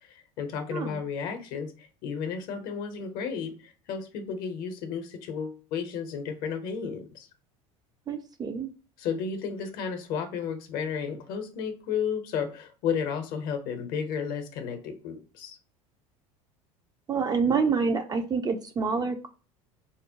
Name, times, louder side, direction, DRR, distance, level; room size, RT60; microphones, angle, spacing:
voice 1, 0.0-7.3 9.0-15.6, left 6 dB, 55° left, 7 dB, 0.6 m, -33 dB
voice 2, 0.7-1.0 8.1-8.7 17.1-19.3, right 5 dB, 25° right, 7 dB, 0.3 m, -27 dB
2.7 x 2.1 x 2.7 m, 0.36 s
hypercardioid pair, 80°, 18 cm